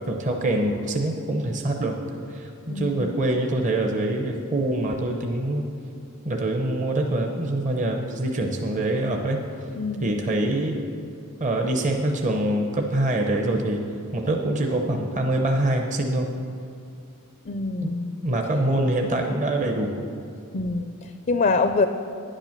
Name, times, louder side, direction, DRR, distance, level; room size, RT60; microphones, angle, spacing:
voice 1, 0.1-2.0 2.3-5.7 6.2-9.4 10.0-10.8 11.4-13.8 14.1-16.3 17.8-17.9 18.2-19.9, right 1 dB, 35° right, 3 dB, 0.7 m, -24 dB
voice 2, 2.7-3.2 9.8-10.1 17.5-18.1 20.5-21.9, left 3 dB, 40° left, 8 dB, 0.4 m, -25 dB
10.5 x 9.0 x 5.9 m, 2.6 s
head